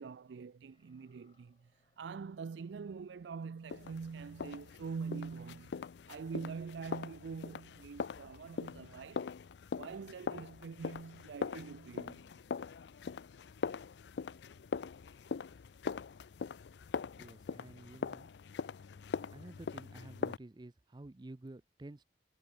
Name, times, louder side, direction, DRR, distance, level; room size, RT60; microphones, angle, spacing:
voice 1, 0.0-1.7 2.0-5.8 6.1-9.3 9.7-12.2, right 5 dB, 80° right, 0.4 m, -44 dB
sound 1, 0.6-8.8, left 4 dB, 35° left, 4.9 m, -78 dB
sound 2, 3.7-20.4, left 5 dB, 70° left, 0.4 m, -42 dB
voice 2, 17.2-18.3 19.0-22.0, right 2 dB, 25° right, 0.5 m, -51 dB
head